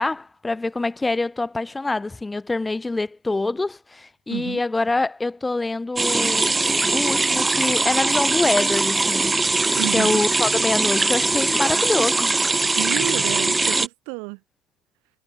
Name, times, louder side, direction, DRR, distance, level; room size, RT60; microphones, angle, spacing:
voice 1, 0.0-6.5 6.9-9.7 9.9-12.3, left 2 dB, 15° left, 1.5 m, -25 dB
voice 2, 4.3-4.6 9.8-10.2 12.7-14.4, right 37 dB, 70° right, 2.5 m, -30 dB
sound 1, 6.0-13.9, right 3 dB, 15° right, 0.5 m, -21 dB
hypercardioid pair, 90°, 0 cm